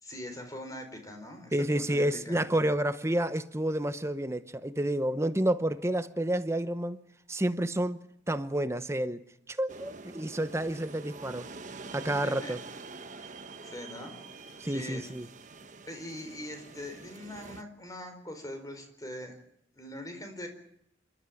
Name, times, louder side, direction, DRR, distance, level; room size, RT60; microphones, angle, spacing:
voice 1, 0.0-2.4 12.1-12.5 13.2-13.3 13.6-14.1 14.6-15.1 15.9-19.4 19.7-20.5, left 1 dB, 20° left, 4.5 m, -42 dB
voice 2, 1.5-7.0 7.3-11.5 11.9-12.6 14.6-15.3, right 1 dB, 15° right, 0.8 m, -30 dB
sound 1, 9.7-17.6, right 4 dB, 45° right, 1.3 m, -46 dB
28.5 x 13.0 x 9.1 m
head